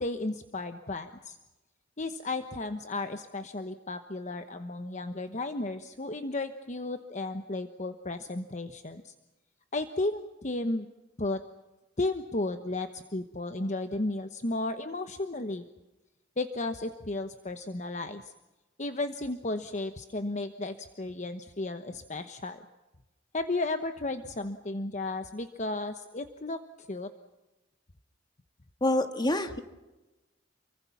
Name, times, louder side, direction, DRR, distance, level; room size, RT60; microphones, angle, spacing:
voice 1, 0.0-1.4 2.0-9.1 9.7-10.9 11.2-11.4 12.0-15.6 16.4-18.3 18.8-22.6 23.3-27.1, left 2 dB, 40° left, 8 dB, 1.1 m, -34 dB
voice 2, 28.8-29.6, left 1 dB, 25° left, 7 dB, 1.9 m, -26 dB
29.0 x 23.5 x 5.9 m, 1.1 s
head